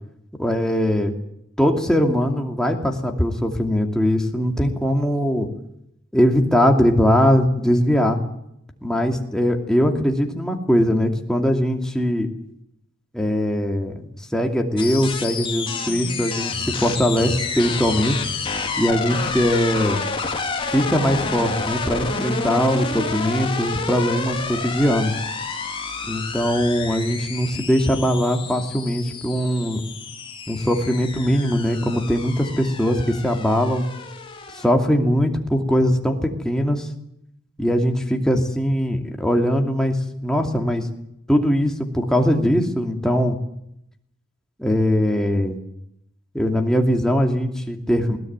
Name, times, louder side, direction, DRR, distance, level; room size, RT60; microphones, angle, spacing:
voice 1, 0.4-1.1 1.6-5.5 6.1-8.2 8.8-12.3 13.1-14.0 14.3-18.2 18.8-20.0 20.7-25.2 26.1-29.8 30.5-33.8 34.6-36.9 37.6-40.0 40.2-40.9 41.3-43.4 44.6-45.6 46.3-48.2, equal, 5° left, 2 dB, 2.6 m, -21 dB
sound 1, 14.8-34.7, left 4 dB, 25° left, 2.7 m, -29 dB
21.0 x 18.0 x 9.4 m, 0.76 s
head